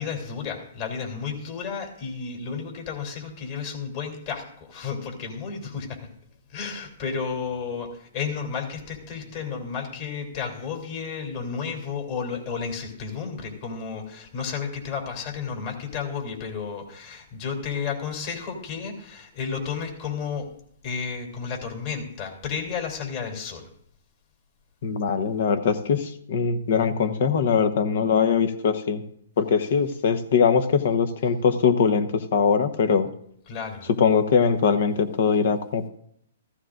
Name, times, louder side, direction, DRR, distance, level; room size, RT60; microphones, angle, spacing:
voice 1, 0.0-6.0 6.5-20.5 20.8-23.7 33.5-33.9, left 6 dB, 45° left, 1 dB, 3.1 m, -32 dB
voice 2, 24.8-29.0 29.4-33.1 34.0-35.9, left 6 dB, 65° left, 10 dB, 1.0 m, -22 dB
15.0 x 14.5 x 2.6 m, 0.68 s
hypercardioid pair, 140°, 0 cm